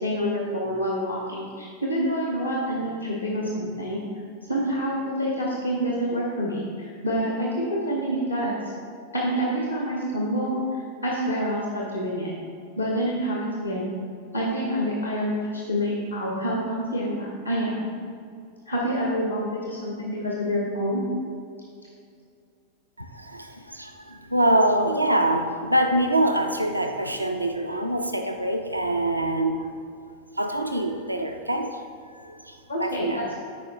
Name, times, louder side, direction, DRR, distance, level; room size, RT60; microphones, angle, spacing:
voice 1, 0.0-4.0 4.5-8.6 9.1-10.6 11.0-12.3 12.8-13.9 14.3-17.9 18.7-21.0 32.7-33.3, equal, 80° left, -3 dB, 0.9 m, -27 dB
voice 2, 23.0-29.7 30.4-31.8 32.1-33.2, right 1 dB, 85° right, 4 dB, 0.4 m, -25 dB
10.0 x 4.7 x 2.7 m, 2.4 s
figure-of-eight pair, 90°, 0 cm